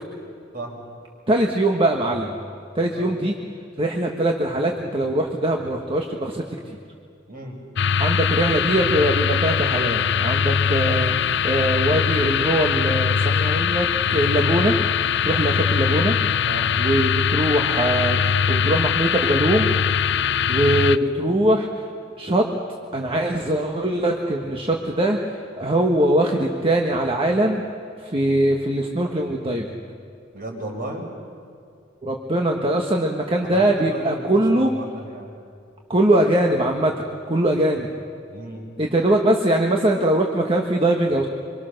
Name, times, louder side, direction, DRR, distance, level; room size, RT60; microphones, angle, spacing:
voice 1, 1.3-2.4 2.7-3.3 3.8-6.8 8.0-14.7 15.2-16.2 16.8-19.7 20.5-21.7 22.2-22.5 22.9-25.2 25.6-27.6 28.0-29.7 32.0-34.7 35.9-37.9 38.8-41.3, right 1 dB, 30° right, 1 dB, 1.4 m, -21 dB
voice 2, 7.3-7.6 16.4-16.7 30.3-31.1 33.4-35.3 38.3-38.7, right 1 dB, 50° right, 1 dB, 5.0 m, -35 dB
sound 1, 7.8-21.0, left 7 dB, 65° left, 0.6 m, -21 dB
25.0 x 25.0 x 6.6 m, 2.3 s
head